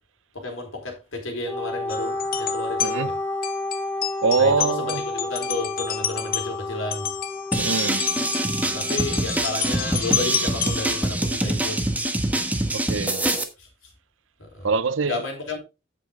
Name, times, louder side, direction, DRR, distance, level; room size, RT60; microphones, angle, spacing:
voice 1, 0.3-3.2 4.4-7.1 8.7-11.8 13.2-13.3 13.6-13.7 14.4-14.7 15.0-15.6, left 2 dB, 80° left, 4.0 m, -32 dB
Wind instrument woodwind instrument, 1.5-9.2, left 2 dB, 10° left, 0.7 m, -31 dB
sound 1, 1.9-11.1, left 10 dB, 50° left, 0.9 m, -30 dB
voice 2, 4.2-5.0 7.6-8.0 12.7-13.2 14.6-15.2, right 4 dB, 70° right, 0.6 m, -23 dB
sound 2, 7.5-13.4, right 1 dB, 10° right, 1.2 m, -25 dB
9.1 x 7.6 x 3.7 m
head